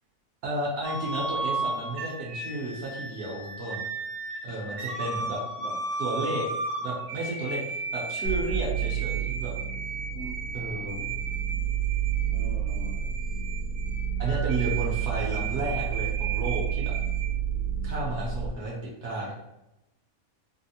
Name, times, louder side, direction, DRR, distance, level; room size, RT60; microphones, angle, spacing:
voice 1, 0.4-3.8 4.4-5.4 6.0-6.5 6.8-9.5 10.5-11.0 14.2-16.9 17.8-19.3, right 2 dB, 60° right, -3 dB, 0.9 m, -32 dB
sound 1, 0.8-17.2, right 3 dB, 85° right, 1.1 m, -35 dB
sound 2, 8.2-18.5, right 8 dB, 85° left, 1.1 m, -30 dB
voice 2, 12.3-13.1, left 1 dB, 70° left, -5 dB, 0.4 m, -42 dB
3.4 x 2.4 x 2.7 m, 0.92 s
omnidirectional pair, 1.5 m